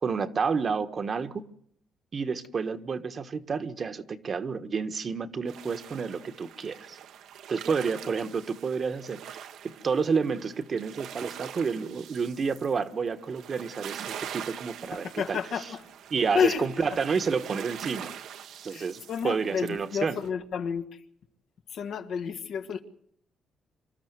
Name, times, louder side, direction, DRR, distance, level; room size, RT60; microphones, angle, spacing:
voice 1, 0.0-1.4 2.1-7.0 7.5-15.6 16.1-18.1 18.6-20.2, right 5 dB, 45° right, 1.4 m, -30 dB
sound 1, 5.5-20.3, right 9 dB, 80° right, 1.4 m, -44 dB
voice 2, 14.9-15.8 16.3-17.0 18.7-21.0 21.7-22.8, left 6 dB, 70° left, 2.0 m, -30 dB
25.5 x 13.0 x 9.5 m
cardioid pair, 90°, 0 cm